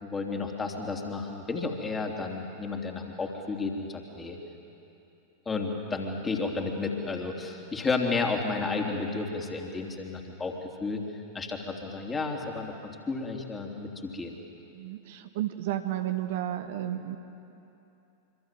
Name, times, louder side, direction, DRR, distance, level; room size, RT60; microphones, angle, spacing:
voice 1, 0.0-4.4 5.5-11.0 11.3-14.4, left 4 dB, 15° left, 2 dB, 3.3 m, -32 dB
voice 2, 14.7-17.2, right 12 dB, 55° right, 8 dB, 1.2 m, -32 dB
25.5 x 25.5 x 7.7 m, 2.9 s
figure-of-eight pair, 90°, 0 cm